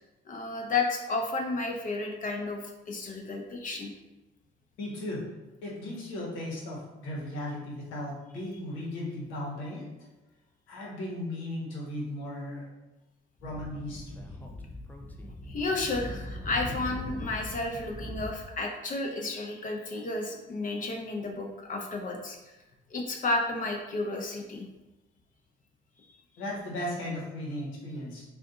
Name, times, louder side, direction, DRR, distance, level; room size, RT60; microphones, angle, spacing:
voice 1, 0.3-2.6 2.9-3.9 15.5-22.4 22.9-24.7, left 3 dB, 45° left, 2 dB, 0.7 m, -32 dB
voice 2, 4.8-5.2 5.6-9.9 10.7-12.7 13.4-14.2 26.4-28.2, left 1 dB, 85° left, -4 dB, 1.1 m, -36 dB
Speech / Wind, 13.4-18.3, left 1 dB, 10° left, 0.4 m, -40 dB
2.6 x 2.4 x 3.7 m, 1.0 s
supercardioid pair, 80°, 20 cm